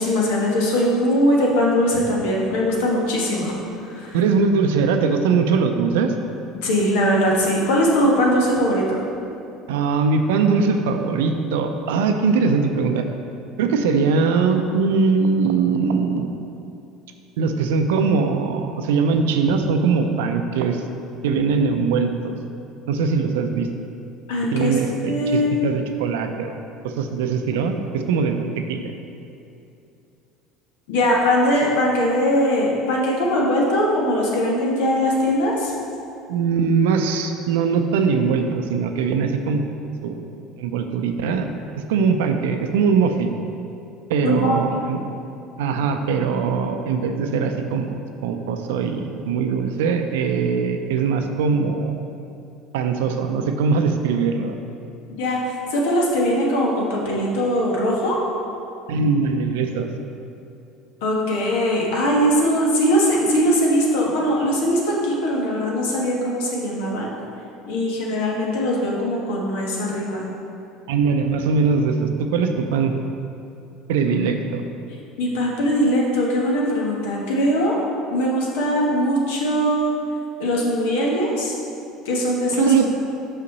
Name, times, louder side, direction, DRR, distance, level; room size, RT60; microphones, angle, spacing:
voice 1, 0.0-3.5 3.8-4.2 6.6-9.0 24.3-24.8 25.1-25.6 30.9-35.7 44.2-44.6 55.1-58.2 61.0-67.1 67.7-70.3 75.2-77.8 78.1-79.9 80.4-81.5 82.0-82.7, equal, 75° left, -2 dB, 1.3 m, -21 dB
voice 2, 4.1-6.1 9.7-13.1 13.6-16.3 17.4-20.8 21.2-22.3 22.9-23.7 24.5-26.6 26.8-28.9 36.3-39.7 40.0-41.5 41.9-43.3 44.1-45.0 45.6-52.0 52.7-54.6 58.9-59.9 70.9-73.0 73.9-74.6 82.5-82.9, right 5 dB, 80° right, 6 dB, 0.5 m, -21 dB
5.9 x 5.5 x 4.0 m, 2.7 s
hypercardioid pair, 80°, 0 cm